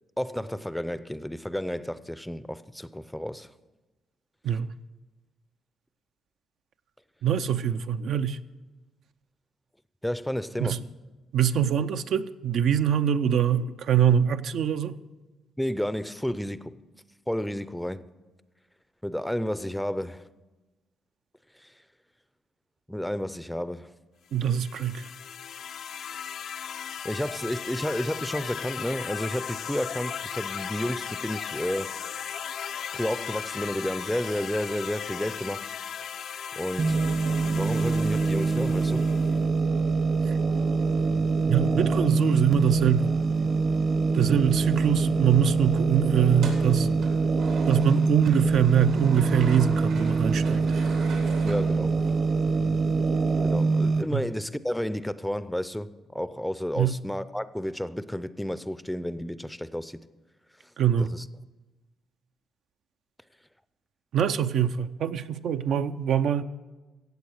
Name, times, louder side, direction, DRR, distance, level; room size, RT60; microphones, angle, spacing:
voice 1, 0.2-3.5 10.0-10.8 15.6-16.8 17.3-18.0 19.0-20.3 21.6-21.7 22.9-23.9 27.0-31.9 32.9-35.7 36.6-37.0 37.4-39.1 51.4-51.9 53.4-60.0 61.0-61.2, equal, 5° left, 0.5 m, -31 dB
voice 2, 7.2-8.4 10.6-10.8 11.3-15.0 24.3-25.1 40.3-40.4 41.4-43.1 44.1-46.9 47.7-50.6 54.1-54.3 56.8-57.0 60.8-61.1 64.1-66.4, right 9 dB, 70° right, 0.5 m, -24 dB
sound 1, 24.4-39.4, left 8 dB, 70° left, 0.5 m, -37 dB
sound 2, 36.8-54.0, right 4 dB, 50° right, 1.0 m, -24 dB
sound 3, 46.3-52.3, right 3 dB, 90° right, 3.4 m, -42 dB
16.0 x 7.9 x 6.5 m
cardioid pair, 90°, 0 cm